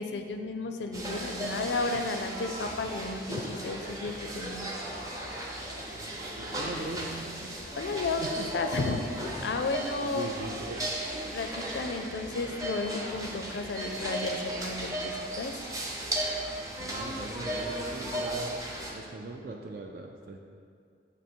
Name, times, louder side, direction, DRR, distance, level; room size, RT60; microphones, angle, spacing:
voice 1, 0.0-4.7 5.3-5.5 7.7-9.0 9.4-10.3 11.3-15.7, left 3 dB, 85° left, 6 dB, 0.4 m, -33 dB
sound 1, 0.9-18.9, right 1 dB, 20° right, 0.7 m, -36 dB
voice 2, 5.9-8.5 10.0-10.8 16.8-18.5 18.9-20.4, right 2 dB, 55° right, 1 dB, 0.4 m, -41 dB
7.8 x 3.0 x 4.4 m, 2.2 s
head